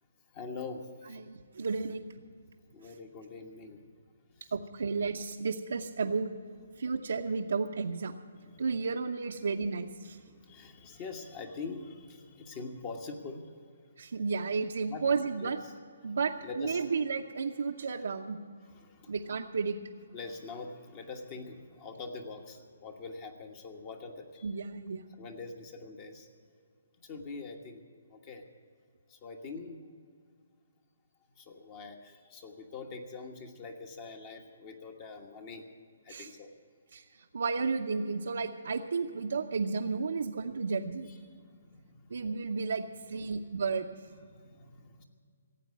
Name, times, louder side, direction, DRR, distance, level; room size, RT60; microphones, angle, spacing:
voice 1, 0.3-1.2 2.7-3.9 4.3-4.5 6.7-7.0 8.3-8.8 10.1-13.6 14.9-15.0 15.4-15.7 16.0-16.1 16.4-16.9 18.0-18.1 18.6-19.2 20.1-24.5 25.1-26.3 27.0-27.8 28.1-28.4 29.1-29.8 31.4-35.7 36.0-36.5 41.0-42.3 43.2-43.3 44.2-45.0, left 4 dB, 30° left, 4 dB, 1.4 m, -44 dB
voice 2, 1.1-2.1 4.5-6.3 6.8-8.1 8.6-10.2 14.0-15.6 16.0-18.4 19.1-19.8 24.4-25.0 36.1-36.3 36.9-37.0 37.3-41.1 42.1-43.9, right 4 dB, 75° right, 0 dB, 0.8 m, -32 dB
16.5 x 8.2 x 9.4 m, 2.1 s
hypercardioid pair, 155°, 0 cm